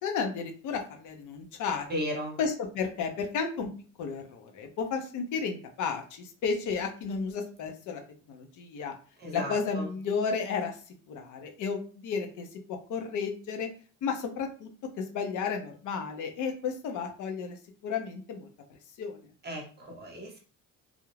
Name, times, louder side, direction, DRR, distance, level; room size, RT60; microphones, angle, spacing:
voice 1, 0.0-1.9 2.4-3.7 4.0-8.0 8.3-8.9 9.3-10.8 11.1-13.7 14.0-14.7 15.0-18.5 19.0-19.3, left 5 dB, 65° left, 4 dB, 0.6 m, -33 dB
voice 2, 1.9-2.4 9.2-9.9 19.4-20.4, equal, 30° right, 1 dB, 0.8 m, -35 dB
2.4 x 2.0 x 3.1 m, 0.39 s
cardioid pair, 130°, 33 cm